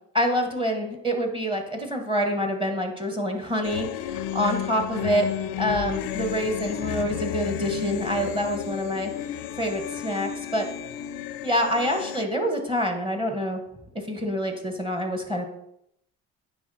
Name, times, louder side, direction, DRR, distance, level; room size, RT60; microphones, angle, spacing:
voice 1, 0.1-5.3 5.6-9.1 9.6-10.7 11.4-13.6 14.1-15.4, equal, 15° right, 3 dB, 1.3 m, -26 dB
sound 1, 3.6-12.3, left 10 dB, 90° left, 0.5 m, -32 dB
9.4 x 3.3 x 4.2 m, 0.76 s
supercardioid pair, 70°, 34 cm